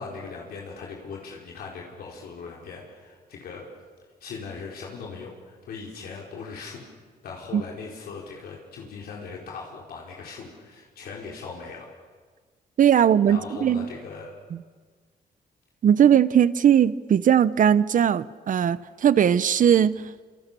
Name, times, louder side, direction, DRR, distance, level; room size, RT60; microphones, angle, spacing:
voice 1, 0.0-3.6 4.2-6.8 7.2-11.9 13.3-14.3, left 5 dB, 80° left, -2 dB, 4.9 m, -39 dB
voice 2, 12.8-13.8 15.8-20.0, right 9 dB, 60° right, 16 dB, 0.9 m, -19 dB
28.0 x 27.0 x 7.1 m, 1.5 s
cardioid pair, 105°, 16 cm